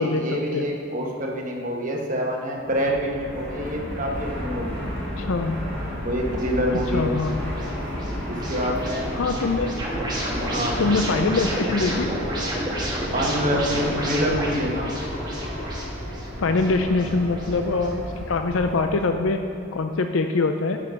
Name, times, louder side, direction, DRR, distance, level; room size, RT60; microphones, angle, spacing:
voice 1, 0.0-4.9 6.0-7.2 8.3-9.5 10.5-10.9 13.1-14.9, equal, 40° right, 0 dB, 1.2 m, -26 dB
Fixed-wing aircraft airplane, 2.7-19.0, equal, 10° left, 2.6 m, -32 dB
voice 2, 5.2-5.6 6.9-7.4 9.1-9.8 10.8-12.1 16.4-19.4 19.7-20.8, left 3 dB, 70° left, 6 dB, 0.5 m, -23 dB
sound 1, 6.4-17.9, right 1 dB, 20° right, 1.4 m, -32 dB
9.9 x 6.4 x 5.7 m, 2.7 s
head